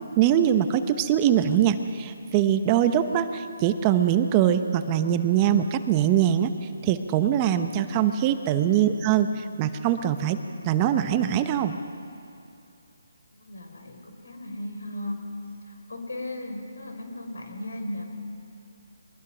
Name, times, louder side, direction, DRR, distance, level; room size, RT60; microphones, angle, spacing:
voice 1, 0.0-6.5 6.8-10.4 10.6-11.8, right 10 dB, 25° right, 9 dB, 0.9 m, -22 dB
voice 2, 13.3-15.2 15.7-18.0, left 1 dB, 85° left, 4 dB, 5.2 m, -36 dB
24.0 x 20.5 x 6.2 m, 2.6 s
hypercardioid pair, 155°, 0 cm